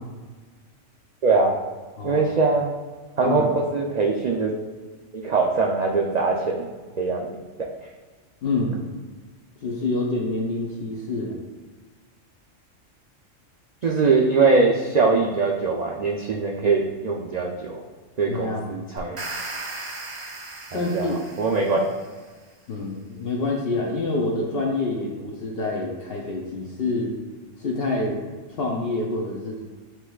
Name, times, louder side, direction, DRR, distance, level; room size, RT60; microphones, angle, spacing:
voice 1, 1.2-1.6 2.0-2.7 3.2-4.5 5.1-6.7 7.0-7.7 13.8-17.8 18.2-19.2 20.7-21.1 21.4-21.8, right 4 dB, 85° right, -1 dB, 0.3 m, -22 dB
voice 2, 3.2-3.5 8.4-8.8 9.6-11.4 18.3-18.7 20.7-21.1 22.7-27.1 27.6-28.2 28.6-29.6, left 2 dB, 60° left, -1 dB, 0.8 m, -27 dB
sound 1, 19.0-22.1, right 2 dB, 35° right, 0.6 m, -36 dB
8.0 x 2.9 x 2.3 m, 1.4 s
omnidirectional pair, 1.3 m